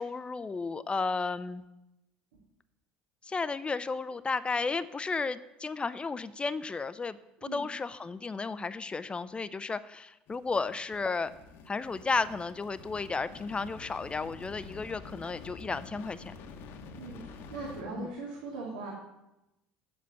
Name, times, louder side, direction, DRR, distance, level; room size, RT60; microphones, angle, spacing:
voice 1, 0.0-1.6 3.3-11.3 11.7-16.3 18.0-18.1, left 4 dB, 25° left, 15 dB, 0.5 m, -33 dB
sound 1, 10.3-17.8, left 4 dB, 60° left, 1.2 m, -48 dB
voice 2, 16.9-18.9, right 3 dB, 80° right, -4 dB, 2.1 m, -40 dB
8.1 x 7.7 x 6.9 m, 0.93 s
hypercardioid pair, 65°, 5 cm